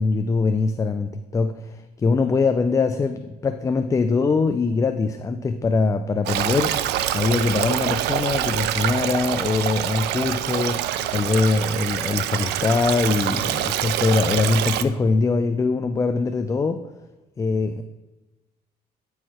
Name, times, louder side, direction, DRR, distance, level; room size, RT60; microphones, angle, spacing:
voice 1, 0.0-6.8 7.1-16.8 17.4-17.8, left 4 dB, 20° left, 8 dB, 0.3 m, -22 dB
Stream, 6.3-14.8, right 12 dB, 85° right, 0.5 m, -25 dB
9.0 x 4.7 x 4.3 m, 1.1 s
cardioid pair, 110°, 17 cm